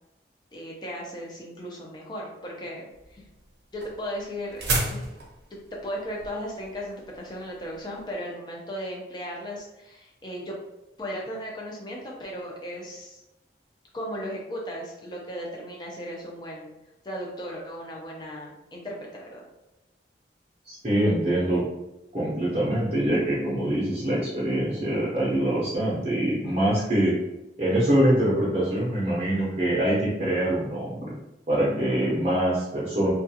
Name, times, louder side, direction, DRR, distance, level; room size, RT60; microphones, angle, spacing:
voice 1, 0.5-3.2 3.7-4.6 4.9-5.0 5.7-10.5 11.0-13.2 13.9-16.7 17.0-19.4, equal, 25° left, -3 dB, 0.5 m, -36 dB
sound 1, 2.9-8.1, right 2 dB, 75° right, 0.6 m, -33 dB
voice 2, 20.6-21.6 22.1-27.1 27.6-31.0 31.5-33.1, right 1 dB, 35° right, -7 dB, 0.6 m, -24 dB
2.3 x 2.3 x 2.7 m, 0.93 s
head